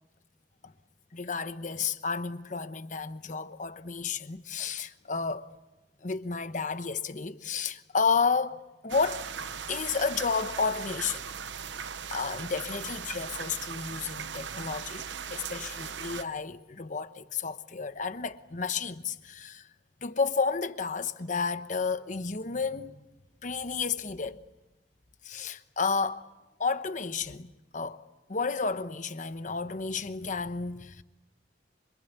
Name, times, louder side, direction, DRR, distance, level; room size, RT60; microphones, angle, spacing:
voice 1, 1.1-5.5 6.0-9.3 9.7-11.3 12.1-15.0 15.3-19.7 20.0-23.0 23.4-24.4 25.2-26.3 26.6-28.0 28.3-31.0, left 5 dB, 45° left, 1.0 m, -31 dB
sound 1, 8.9-16.2, right 7 dB, 80° right, 0.9 m, -39 dB
26.5 x 24.5 x 8.2 m
head